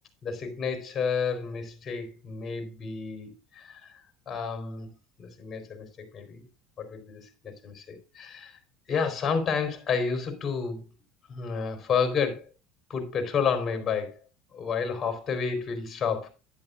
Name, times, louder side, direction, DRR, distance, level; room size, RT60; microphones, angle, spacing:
voice 1, 0.2-4.0 4.3-4.9 5.2-6.5 6.8-8.6 8.9-10.9 11.3-12.5 12.9-14.1 14.5-16.3, left 6 dB, 30° left, 4.0 m, -30 dB
10.5 x 10.5 x 2.5 m
supercardioid pair, 110°, 0 cm